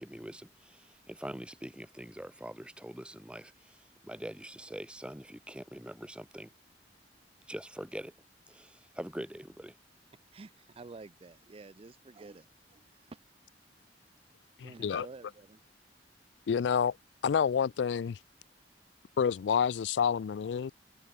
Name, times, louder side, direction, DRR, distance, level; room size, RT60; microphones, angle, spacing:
voice 1, 0.0-6.5 7.5-8.1 8.5-9.8, right 1 dB, 5° right, 1.2 m, -44 dB
voice 2, 10.3-13.2 14.6-15.6, right 3 dB, 30° right, 0.5 m, -50 dB
voice 3, 14.6-15.1 16.5-17.0 17.2-18.2 19.2-20.7, left 7 dB, 80° left, 0.4 m, -28 dB
head